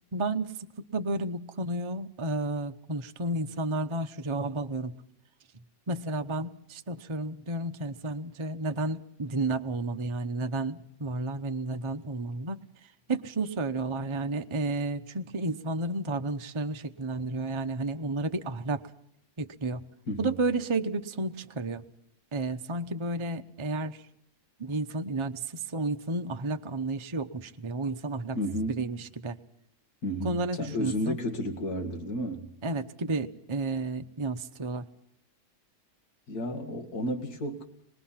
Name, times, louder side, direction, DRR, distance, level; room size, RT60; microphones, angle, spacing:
voice 1, 0.1-0.5 0.9-5.0 5.9-12.6 13.1-18.8 19.4-19.8 20.2-21.9 22.3-24.0 24.6-28.4 28.7-29.4 30.2-31.2 32.6-34.9, right 2 dB, 25° right, 7 dB, 0.7 m, -32 dB
voice 2, 20.1-20.4 28.3-28.8 30.0-32.5 36.3-37.7, equal, 90° left, 4 dB, 2.7 m, -32 dB
25.5 x 21.5 x 5.8 m, 0.76 s
omnidirectional pair, 1.6 m